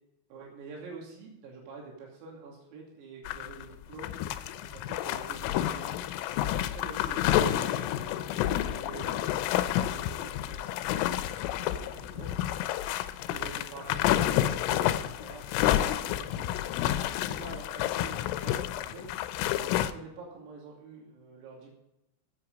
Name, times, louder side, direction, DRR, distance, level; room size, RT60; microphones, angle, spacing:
voice 1, 0.3-4.1 4.5-6.0 6.7-12.5 13.2-21.7, right 4 dB, 85° right, -2 dB, 5.3 m, -47 dB
sound 1, 3.3-3.6 3.9-19.9, left 12 dB, 80° left, 3.0 m, -29 dB
15.5 x 8.7 x 5.2 m, 0.91 s
omnidirectional pair, 6.0 m